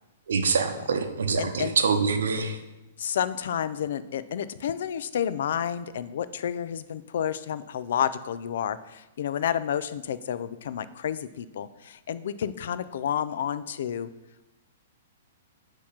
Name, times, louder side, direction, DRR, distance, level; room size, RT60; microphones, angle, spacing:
voice 1, 0.3-2.6, right 5 dB, 85° right, 5 dB, 0.7 m, -25 dB
voice 2, 1.4-1.8 3.0-14.1, left 9 dB, 65° left, 15 dB, 0.4 m, -30 dB
8.4 x 3.0 x 5.7 m, 0.99 s
hypercardioid pair, 160°, 0 cm